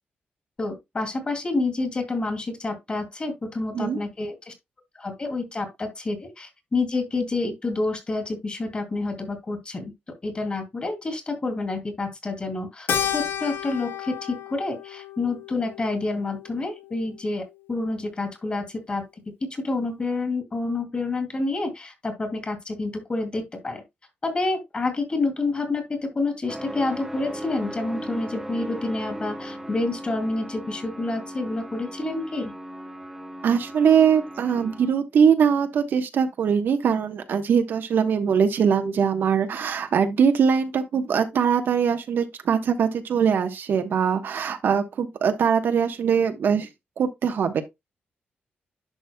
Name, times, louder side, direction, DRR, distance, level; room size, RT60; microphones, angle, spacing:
voice 1, 0.6-4.5 4.9-9.9 10.2-12.9 13.1-19.0 19.4-23.8 24.2-32.5, left 3 dB, 30° left, 2.8 m, -28 dB
Keyboard (musical), 12.9-17.5, left 9 dB, 70° left, 0.9 m, -32 dB
sound 1, 26.5-34.9, right 1 dB, 5° right, 1.0 m, -37 dB
voice 2, 33.4-46.7 47.0-47.6, right 7 dB, 65° right, 1.2 m, -22 dB
11.0 x 6.2 x 2.3 m
wide cardioid pair, 140°, 4 cm